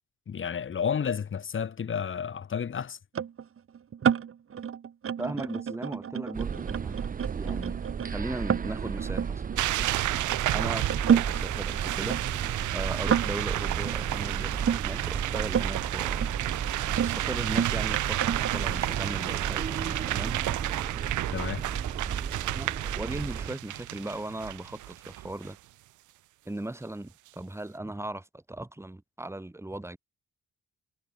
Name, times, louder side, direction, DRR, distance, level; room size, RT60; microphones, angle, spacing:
voice 1, 0.3-3.0 21.3-21.7, left 7 dB, 40° left, 1.8 m, -31 dB
sound 1, 3.1-10.4 10.9-14.8 15.4-15.9 16.2-19.3 20.0-20.5, right 8 dB, 45° right, 1.6 m, -30 dB
voice 2, 5.2-7.0 7.3-9.4 10.5-12.2 12.7-16.3 17.0-20.4 22.5-25.6 26.4-30.0, right 1 dB, 10° right, 3.4 m, -38 dB
sound 2, 6.3-23.5, right 6 dB, 30° right, 0.6 m, -34 dB
sound 3, 9.6-25.5, right 16 dB, 75° right, 0.8 m, -32 dB
cardioid pair, 90°, 30 cm